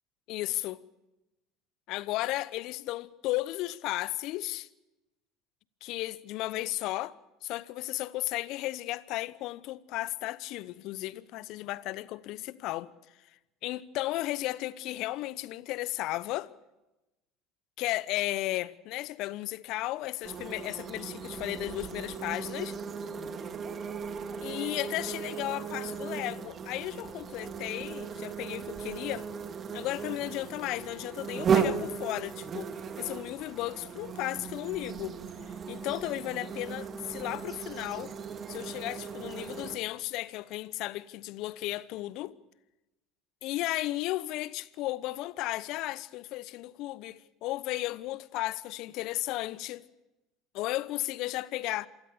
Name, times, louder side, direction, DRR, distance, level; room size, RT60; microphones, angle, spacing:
voice 1, 0.3-0.8 1.9-4.7 5.8-7.1 7.4-12.9 13.6-16.5 17.8-22.8 24.4-29.3 29.7-35.2 35.7-38.1 38.5-42.4 43.4-49.8 50.5-51.9, left 17 dB, 60° left, 0.9 m, -34 dB
sound 1, 20.2-39.8, right 6 dB, 40° right, 2.4 m, -36 dB
27.0 x 19.5 x 7.0 m
hypercardioid pair, 70°, 0 cm